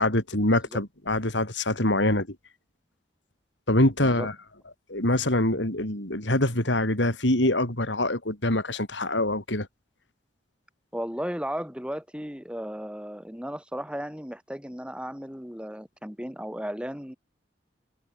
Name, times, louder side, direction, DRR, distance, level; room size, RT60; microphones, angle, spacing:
voice 1, 0.0-2.4 3.7-4.3 4.9-9.7, left 1 dB, 85° left, 5.9 m, -24 dB
voice 2, 10.9-17.2, equal, 5° right, 5.0 m, -35 dB
head